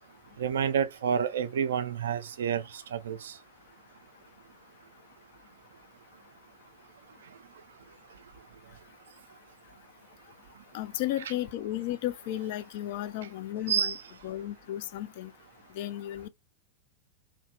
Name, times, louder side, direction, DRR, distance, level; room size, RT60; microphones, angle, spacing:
voice 1, 0.4-3.3 13.7-14.0, right 8 dB, 65° right, 0.3 m, -29 dB
voice 2, 10.7-14.0 14.2-15.3 15.8-16.3, left 13 dB, 50° left, 0.3 m, -34 dB
2.7 x 2.1 x 2.3 m
figure-of-eight pair, 90°, 0 cm